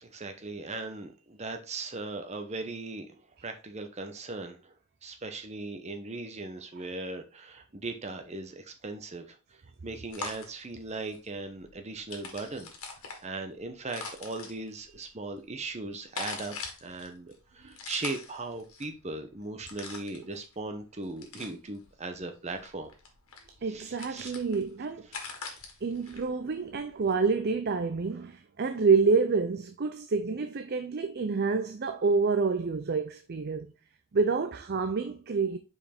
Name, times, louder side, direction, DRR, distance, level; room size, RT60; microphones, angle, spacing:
voice 1, 0.0-4.7 5.0-9.4 9.8-12.7 13.2-22.9 23.7-24.3, right 3 dB, 30° right, 1.0 m, -38 dB
sound 1, 10.1-27.1, left 4 dB, 75° left, 1.8 m, -44 dB
voice 2, 23.6-25.0 25.8-33.7 34.1-35.6, right 4 dB, 50° right, 0.5 m, -28 dB
5.3 x 4.9 x 4.3 m
head